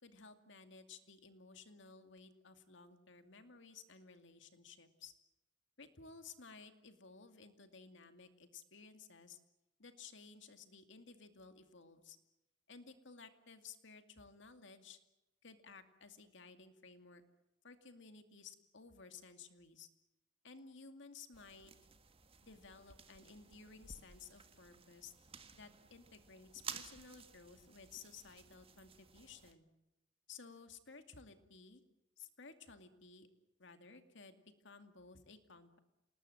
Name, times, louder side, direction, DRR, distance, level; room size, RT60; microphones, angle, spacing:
voice 1, 0.0-5.1 5.8-9.4 9.8-12.2 12.7-15.0 15.4-17.2 17.6-19.9 20.4-21.7 22.4-25.1 25.5-29.7 30.3-31.8 32.2-33.3 33.6-35.8, left 5 dB, 70° left, 8 dB, 2.4 m, -56 dB
sound 1, 21.3-29.5, right 6 dB, 30° right, 1.6 m, -54 dB
28.0 x 19.5 x 9.1 m, 0.94 s
head